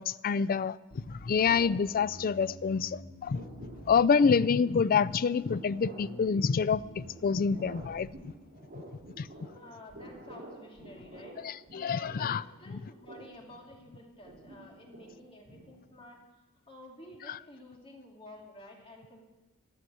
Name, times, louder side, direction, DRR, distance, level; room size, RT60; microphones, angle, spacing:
voice 1, 0.0-3.5 3.9-8.1 9.2-9.3 11.4-12.4 17.3-17.4, left 6 dB, 40° left, 0.4 m, -27 dB
Bass guitar, 0.9-4.5 5.1-5.6 6.0-8.1, equal, 60° left, 1.5 m, -48 dB
sound 1, 1.5-2.7 3.0-16.1, right 1 dB, 40° right, 3.4 m, -50 dB
voice 2, 9.5-16.2 16.7-19.2, left 1 dB, 25° left, 2.7 m, -51 dB
15.0 x 9.6 x 7.8 m
head